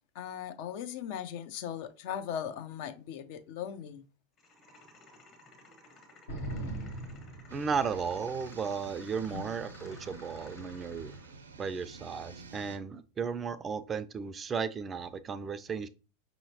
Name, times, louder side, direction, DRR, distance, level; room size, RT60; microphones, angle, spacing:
voice 1, 0.1-4.0 9.3-9.5, left 9 dB, 55° left, 0.6 m, -38 dB
sound 1, 4.4-11.4, left 2 dB, 40° left, 1.2 m, -56 dB
sound 2, 6.3-8.2, right 1 dB, 80° left, 1.3 m, -39 dB
voice 2, 7.5-11.1 11.6-15.9, right 6 dB, 25° right, 0.4 m, -35 dB
sound 3, 7.5-12.8, right 4 dB, 80° right, 0.6 m, -48 dB
5.5 x 2.8 x 2.8 m
hypercardioid pair, 90°, 0 cm